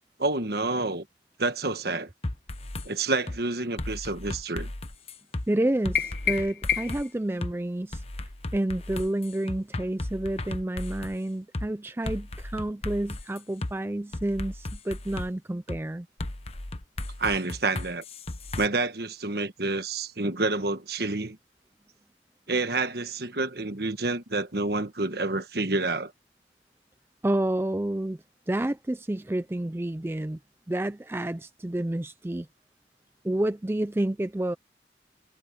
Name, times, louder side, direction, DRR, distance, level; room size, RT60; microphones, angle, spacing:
voice 1, 0.2-1.0 1.4-2.1 2.8-4.7 17.2-18.0 18.6-21.4 22.5-26.1, right 3 dB, 60° right, 1.4 m, -28 dB
sound 1, 2.2-2.9 3.3-3.4 3.8-5.5 5.8-7.0 7.4-7.5 7.9-11.2 11.5-11.7 12.1-13.7 14.1-15.3 15.7-15.8 16.2-18.7, left 1 dB, 35° left, 1.1 m, -35 dB
voice 2, 5.5-16.1 27.2-28.2 28.5-30.4 30.7-32.5 33.2-34.6, right 1 dB, 15° right, 0.4 m, -29 dB
sound 2, 6.0-7.2, left 8 dB, 55° left, 1.5 m, -28 dB
head